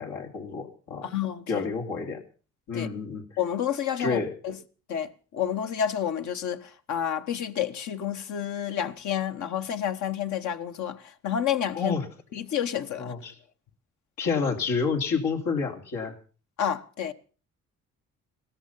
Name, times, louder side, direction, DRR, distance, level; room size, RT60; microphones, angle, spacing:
voice 1, 0.0-1.1 1.5-2.2 2.7-3.2 4.0-4.3 11.7-12.1 12.9-13.3 14.2-16.1, left 5 dB, 90° left, 3.1 m, -29 dB
voice 2, 1.0-1.7 2.7-2.9 3.4-4.6 4.9-11.9 12.3-13.1 16.6-17.1, left 9 dB, 70° left, 1.3 m, -30 dB
17.0 x 13.5 x 5.6 m
cardioid pair, 90°, 30 cm